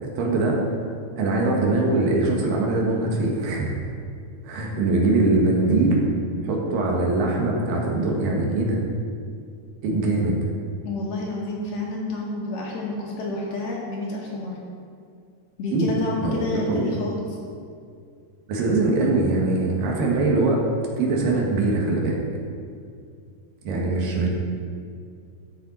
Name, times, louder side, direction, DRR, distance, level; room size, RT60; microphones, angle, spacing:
voice 1, 0.0-0.6 1.2-3.7 4.5-6.0 6.4-8.8 9.8-10.4 15.7-15.9 16.2-16.9 18.5-20.6 21.0-22.2 23.6-24.3, right 2 dB, 85° right, -1 dB, 3.0 m, -22 dB
voice 2, 10.8-14.6 15.6-17.4 23.8-24.0, left 2 dB, 65° left, -3 dB, 2.0 m, -29 dB
13.5 x 5.0 x 4.2 m, 2.3 s
omnidirectional pair, 3.8 m